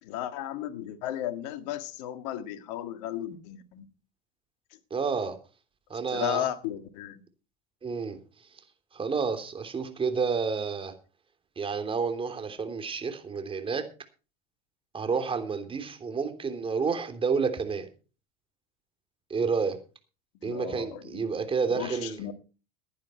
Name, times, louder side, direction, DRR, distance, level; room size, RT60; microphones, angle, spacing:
voice 1, 0.0-3.8 6.1-7.2 20.4-21.2 21.7-22.3, left 11 dB, 70° left, 1.8 m, -34 dB
voice 2, 4.9-5.4 5.9-6.5 7.8-8.2 8.9-10.9 11.6-13.9 14.9-17.9 19.3-19.8 20.4-22.2, right 5 dB, 25° right, 3.2 m, -30 dB
15.5 x 10.5 x 4.4 m
hypercardioid pair, 90°, 21 cm